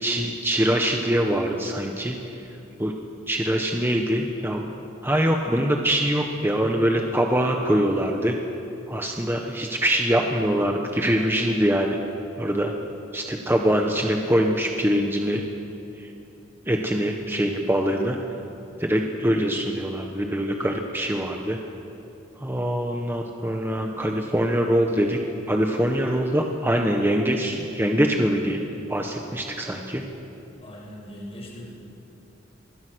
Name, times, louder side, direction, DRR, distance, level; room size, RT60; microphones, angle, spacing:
voice 1, 0.0-2.2 2.8-2.9 3.3-4.7 5.0-8.3 8.9-12.0 12.4-12.7 13.1-15.4 16.0-16.1 16.7-18.2 18.8-21.6 22.4-25.2 25.5-28.6 28.9-30.0, equal, 10° right, 2 dB, 1.3 m, -23 dB
voice 2, 30.6-31.7, equal, 30° left, -2 dB, 6.4 m, -40 dB
25.5 x 21.0 x 6.4 m, 3.0 s
head